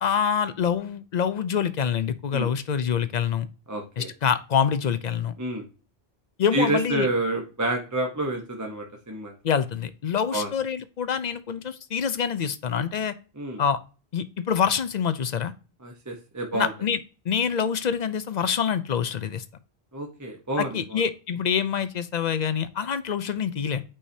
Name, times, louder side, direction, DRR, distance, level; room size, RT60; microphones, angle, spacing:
voice 1, 0.0-3.5 4.0-5.3 6.4-7.1 9.4-13.2 13.6-13.8 14.1-15.5 16.5-17.0 17.3-19.4 20.6-23.8, left 7 dB, 50° left, 13 dB, 0.6 m, -26 dB
voice 2, 3.7-4.1 5.4-5.6 6.5-9.3 10.3-10.5 13.4-13.6 15.8-16.7 19.9-21.0, right 1 dB, 20° right, 1 dB, 0.9 m, -28 dB
8.6 x 4.9 x 2.7 m, 0.34 s
omnidirectional pair, 1.1 m